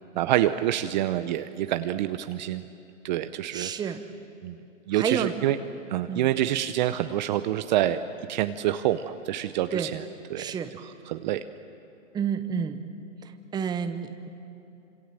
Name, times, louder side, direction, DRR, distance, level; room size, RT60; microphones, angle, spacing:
voice 1, 0.2-2.6 3.0-3.7 4.4-4.6 4.9-5.6 5.9-8.0 8.3-10.0 10.3-10.5 11.1-11.4, right 13 dB, 35° right, 10 dB, 0.8 m, -26 dB
voice 2, 3.5-4.0 4.9-5.3 6.1-6.3 9.7-9.9 10.4-10.7 12.1-12.8 13.2-14.3, right 7 dB, 10° right, 9 dB, 1.0 m, -30 dB
27.0 x 26.5 x 7.6 m, 2.8 s
hypercardioid pair, 135°, 39 cm